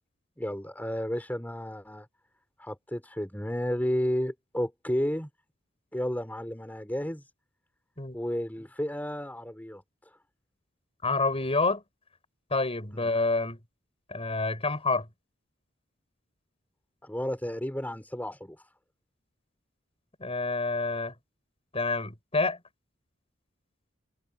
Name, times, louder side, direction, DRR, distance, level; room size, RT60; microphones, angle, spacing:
voice 1, 0.4-2.1 2.6-5.3 5.9-7.2 8.1-9.8 12.9-13.1 17.0-18.6, equal, 10° left, 4.1 m, -32 dB
voice 2, 11.0-11.8 12.5-13.6 14.1-15.1 20.2-21.1 21.7-22.6, left 3 dB, 30° left, 7.1 m, -28 dB
head